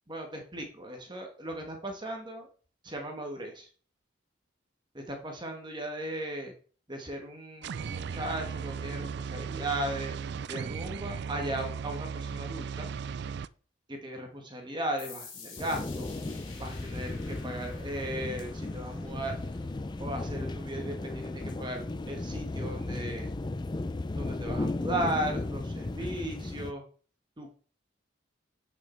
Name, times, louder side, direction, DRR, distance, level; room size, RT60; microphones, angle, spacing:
voice 1, 0.1-2.5 2.8-3.7 4.9-6.5 6.9-10.1 10.5-12.9 13.9-16.1 16.6-19.4 20.0-23.3 24.1-26.8 27.4-27.5, right 1 dB, 25° right, 3 dB, 1.5 m, -36 dB
sound 1, 7.6-13.5, right 6 dB, 55° right, 0.3 m, -36 dB
sound 2, 15.0-22.4, left 5 dB, 75° left, 3.1 m, -52 dB
sound 3, 15.6-26.7, left 2 dB, 20° left, 0.4 m, -35 dB
8.5 x 6.1 x 4.4 m, 0.42 s
head